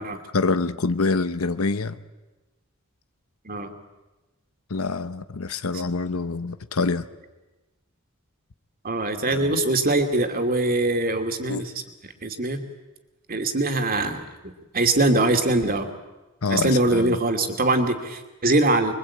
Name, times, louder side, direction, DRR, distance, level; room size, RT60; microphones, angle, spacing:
voice 1, 0.3-2.0 4.7-7.0 9.3-9.6 11.5-11.6 16.4-17.2, left 3 dB, 80° left, 11 dB, 0.9 m, -26 dB
voice 2, 8.8-11.7 12.2-12.6 13.3-15.9 16.5-18.9, right 2 dB, 45° right, 6 dB, 2.6 m, -23 dB
25.5 x 23.0 x 8.6 m, 1.1 s
head